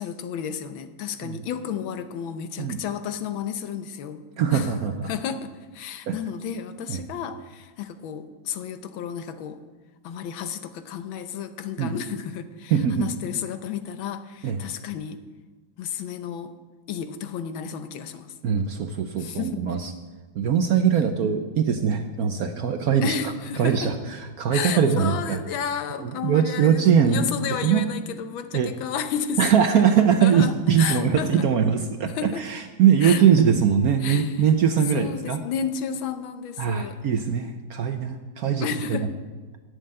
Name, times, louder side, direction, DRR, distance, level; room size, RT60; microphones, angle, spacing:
voice 1, 0.0-4.2 4.5-4.7 5.1-9.6 10.0-15.2 15.8-16.5 16.9-18.3 19.2-19.6 23.0-23.9 24.5-26.8 27.1-29.5 30.2-31.5 32.1-32.4 33.0-33.5 34.0-34.5 34.9-37.0 38.6-39.1, left 8 dB, 80° left, 10 dB, 1.6 m, -32 dB
voice 2, 4.4-5.1 6.1-6.2 6.9-7.0 11.8-12.0 12.7-13.1 14.4-14.6 18.4-19.9 20.3-23.2 23.6-23.9 24.4-25.4 26.0-27.3 27.6-27.9 28.5-28.7 29.4-35.4 36.6-39.0, right 7 dB, 65° right, 7 dB, 1.0 m, -21 dB
11.0 x 6.8 x 8.8 m, 1.4 s
omnidirectional pair, 2.2 m